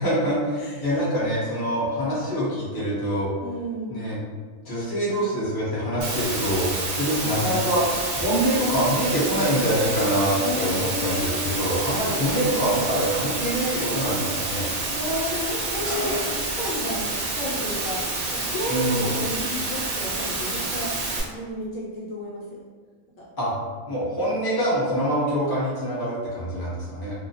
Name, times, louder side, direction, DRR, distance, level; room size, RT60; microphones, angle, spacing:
voice 1, 0.0-3.3 3.9-4.2 4.6-14.7 18.7-19.0 23.4-23.5 23.9-27.1, equal, 20° left, -9 dB, 0.7 m, -25 dB
voice 2, 0.6-1.0 3.4-4.0 10.4-11.7 14.9-18.0 18.3-20.9 21.3-22.6 23.2-23.3, left 1 dB, 75° left, -5 dB, 0.9 m, -32 dB
Water, 6.0-21.2, right 2 dB, 85° right, 0.4 m, -28 dB
Car, 14.4-17.1 17.4-17.6, equal, 30° right, 0.6 m, -37 dB
2.3 x 2.1 x 2.7 m, 1.5 s
omnidirectional pair, 1.4 m